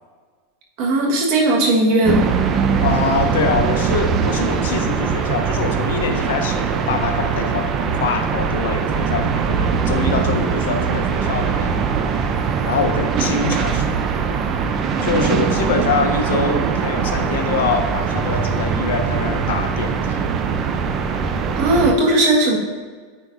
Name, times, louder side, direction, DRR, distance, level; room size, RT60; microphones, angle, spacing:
voice 1, 0.8-2.3 21.6-22.6, right 1 dB, 55° right, 0 dB, 1.4 m, -17 dB
sound 1, 2.0-21.9, right 6 dB, 35° right, 0.5 m, -21 dB
voice 2, 2.8-14.2 15.0-20.3, left 5 dB, 85° left, 6 dB, 0.8 m, -24 dB
9.7 x 4.5 x 2.6 m, 1.5 s
supercardioid pair, 135°, 0 cm